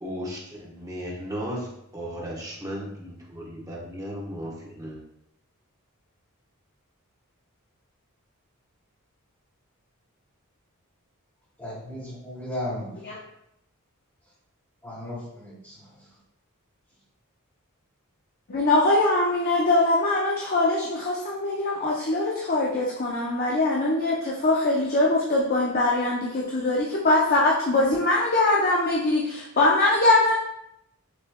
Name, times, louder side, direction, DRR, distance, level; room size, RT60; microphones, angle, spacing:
voice 1, 0.0-1.7 1.9-5.0, equal, 15° right, -3 dB, 1.1 m, -35 dB
voice 2, 11.6-12.9 14.8-15.7, left 1 dB, 15° left, -12 dB, 1.7 m, -35 dB
voice 3, 18.5-30.4, left 2 dB, 45° left, -3 dB, 0.7 m, -22 dB
6.6 x 3.2 x 2.2 m, 0.78 s
head